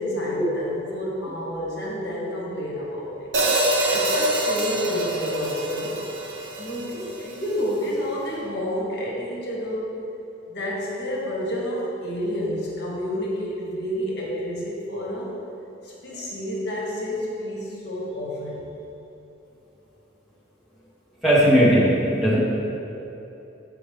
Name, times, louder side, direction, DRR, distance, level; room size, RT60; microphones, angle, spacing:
voice 1, 0.0-3.3 3.7-6.0 6.6-9.9 10.5-15.3 15.8-18.6, equal, 60° left, -4 dB, 1.2 m, -29 dB
Hi-hat, 3.3-7.5, right 1 dB, 65° right, 0.7 m, -25 dB
voice 2, 21.2-22.4, equal, ahead, -9 dB, 1.2 m, -17 dB
7.0 x 5.0 x 3.5 m, 3.0 s
head